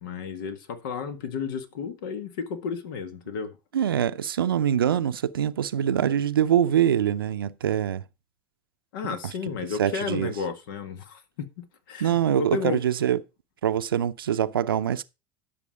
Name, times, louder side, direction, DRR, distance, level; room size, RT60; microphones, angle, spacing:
voice 1, 0.0-3.5 8.9-12.8, left 5 dB, 70° left, 1.8 m, -33 dB
voice 2, 3.7-8.0 9.8-10.3 12.0-13.2 13.6-15.0, right 9 dB, 85° right, 0.6 m, -24 dB
11.0 x 6.7 x 5.0 m
hypercardioid pair, 75°, 12 cm